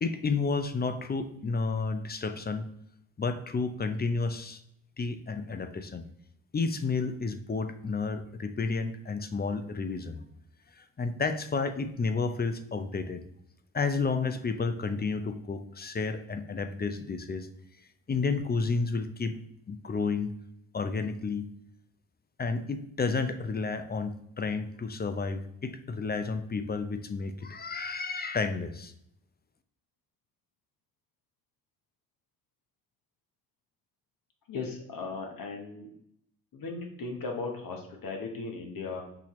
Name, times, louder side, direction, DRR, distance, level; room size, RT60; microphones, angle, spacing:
voice 1, 0.0-2.7 3.2-4.6 5.0-6.0 6.5-10.2 10.8-13.2 13.7-17.5 18.1-19.4 19.7-20.3 20.7-21.4 22.4-28.9, left 4 dB, 25° left, 10 dB, 0.5 m, -31 dB
voice 2, 34.5-35.9 36.5-39.0, left 4 dB, 55° left, 2 dB, 1.1 m, -37 dB
6.0 x 2.8 x 3.0 m, 0.73 s
supercardioid pair, 55°, 41 cm